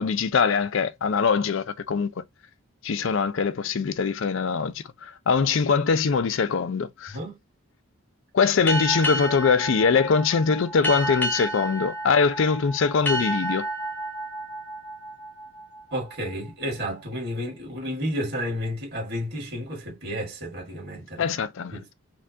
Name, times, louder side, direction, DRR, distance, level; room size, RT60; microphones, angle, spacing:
voice 1, 0.0-2.1 2.8-7.2 8.3-13.7 21.2-21.9, left 5 dB, 60° left, 0.4 m, -23 dB
sound 1, 8.7-15.9, right 1 dB, 10° left, 0.7 m, -30 dB
voice 2, 15.9-21.3 21.7-21.9, equal, 50° right, 1.8 m, -31 dB
4.3 x 2.4 x 2.7 m
head